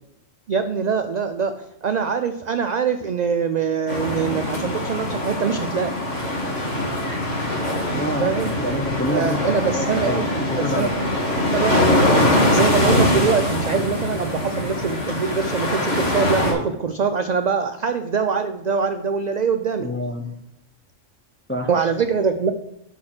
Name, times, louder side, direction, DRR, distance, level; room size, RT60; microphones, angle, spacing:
voice 1, 0.5-5.9 7.9-8.5 9.1-10.3 10.5-10.9 11.5-19.9 21.7-22.5, right 6 dB, 75° right, 8 dB, 0.4 m, -23 dB
sound 1, 3.9-16.5, left 1 dB, 70° left, 2.4 m, -22 dB
voice 2, 7.9-10.9 19.8-20.3 21.5-21.7, equal, 15° left, 4 dB, 0.4 m, -27 dB
6.3 x 6.0 x 5.9 m, 0.84 s
omnidirectional pair, 1.3 m